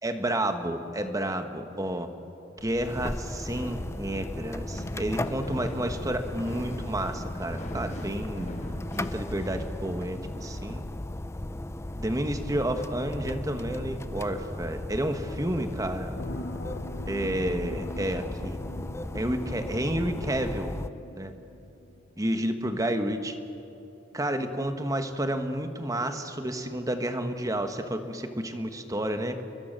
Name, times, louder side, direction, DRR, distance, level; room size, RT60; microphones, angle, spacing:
voice 1, 0.0-2.1 2.6-8.5 8.9-10.8 12.0-16.1 17.1-18.6 19.1-20.7 21.1-21.3 22.2-23.4 24.1-29.4, right 1 dB, 20° right, 7 dB, 1.5 m, -30 dB
sound 1, 2.6-20.9, left 1 dB, 15° left, 0.5 m, -36 dB
sound 2, 4.4-9.8, equal, 40° left, 4.0 m, -42 dB
sound 3, 16.1-22.2 22.6-22.7, left 1 dB, 65° left, 1.0 m, -42 dB
29.5 x 22.5 x 6.8 m, 2.8 s
head